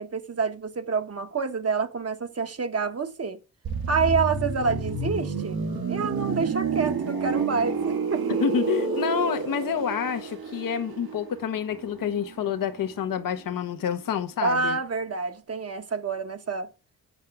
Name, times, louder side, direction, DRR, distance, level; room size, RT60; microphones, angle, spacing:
voice 1, 0.0-3.4 3.9-5.6 5.9-8.4 14.4-16.7, right 4 dB, 45° right, 1.2 m, -28 dB
sound 1, 3.6-13.3 13.6-13.8, right 5 dB, 80° right, 2.2 m, -30 dB
voice 2, 8.4-14.8, left 8 dB, 65° left, 1.0 m, -28 dB
8.3 x 5.6 x 4.7 m
cardioid pair, 60°, 36 cm